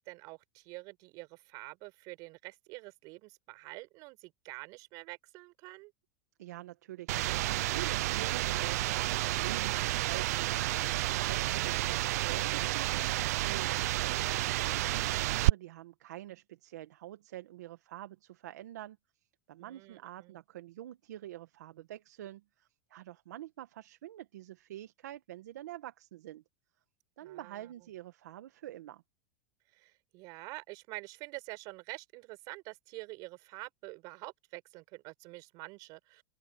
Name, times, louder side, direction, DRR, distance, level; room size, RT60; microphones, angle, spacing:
voice 1, 0.0-5.9 19.6-20.4 27.2-27.7 29.7-36.2, right 24 dB, 45° right, 6.4 m, -47 dB
voice 2, 6.4-13.9 14.3-19.0 19.5-26.4 27.2-29.0, right 14 dB, 90° right, 1.4 m, -46 dB
sound 1, 7.1-15.5, right 17 dB, 70° right, 0.5 m, -30 dB
open air
supercardioid pair, 160°, 9 cm